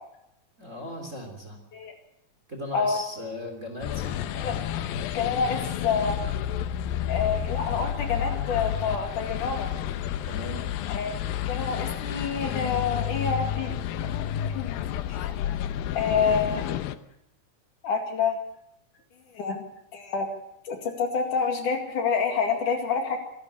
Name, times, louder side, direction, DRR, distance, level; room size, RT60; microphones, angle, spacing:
voice 1, 0.6-1.6 2.5-4.3 10.3-10.7, left 1 dB, 20° right, 4 dB, 3.3 m, -38 dB
sound 1, 3.8-17.0, left 10 dB, 80° left, 2.6 m, -30 dB
voice 2, 5.1-6.2 7.1-9.7 10.9-11.1 11.5-13.7 14.5-15.3 15.9-16.6 17.8-18.4 19.3-19.6 19.9-20.3 20.7-23.2, left 5 dB, 60° left, 3 dB, 3.6 m, -27 dB
26.0 x 12.0 x 8.3 m, 0.82 s
omnidirectional pair, 4.3 m